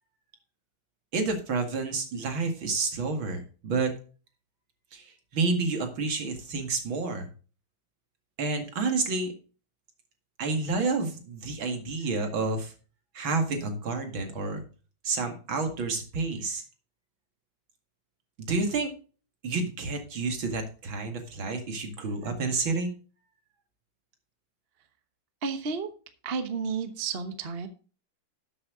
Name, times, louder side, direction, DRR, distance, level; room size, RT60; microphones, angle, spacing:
voice 1, 1.1-3.9 4.9-7.3 8.4-9.3 10.4-12.7 13.1-14.6 15.0-16.6 18.4-18.9 19.4-22.9, right 3 dB, 65° right, 5 dB, 2.8 m, -29 dB
voice 2, 25.4-25.9 26.2-27.7, right 5 dB, 35° right, 9 dB, 1.0 m, -31 dB
13.0 x 7.7 x 3.7 m, 0.37 s
omnidirectional pair, 2.3 m